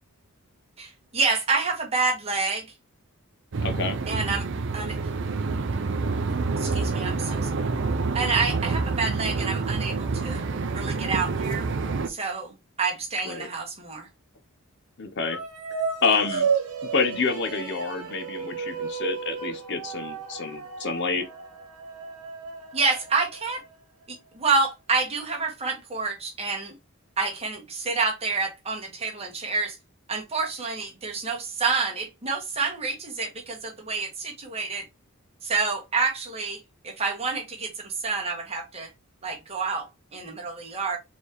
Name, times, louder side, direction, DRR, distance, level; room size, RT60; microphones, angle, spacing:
voice 1, 0.8-2.7 4.1-4.5 4.7-5.0 6.6-7.5 8.1-10.4 10.7-11.7 12.1-14.1 22.7-23.6 24.1-26.7 27.2-29.8 30.1-34.9 35.4-36.6 36.8-38.9 39.2-41.0, right 4 dB, 25° right, 1.2 m, -28 dB
sound 1, 3.5-12.1, right 4 dB, 55° right, 0.5 m, -27 dB
voice 2, 3.6-4.0 13.2-13.5 15.0-15.4 16.0-16.5 16.9-21.2, left 4 dB, 50° left, 0.7 m, -28 dB
sound 2, 15.2-23.7, right 6 dB, 75° right, 1.2 m, -32 dB
4.4 x 3.4 x 3.0 m
head